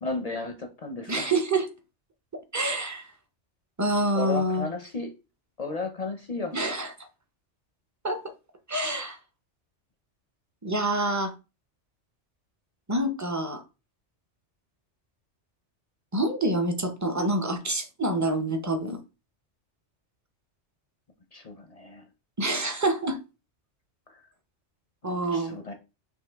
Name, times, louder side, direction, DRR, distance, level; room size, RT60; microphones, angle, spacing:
voice 1, 0.0-1.3 4.1-5.1 5.6-6.6 21.3-22.1 24.1-24.2 25.3-25.7, left 3 dB, 45° left, 0.5 m, -34 dB
voice 2, 1.1-1.7 2.5-3.1 3.8-4.7 6.5-7.1 8.0-8.2 8.7-9.2 10.6-11.3 12.9-13.6 16.1-19.0 22.4-23.2 25.0-25.6, right 1 dB, 25° right, 0.4 m, -27 dB
5.5 x 2.5 x 3.4 m
omnidirectional pair, 1.2 m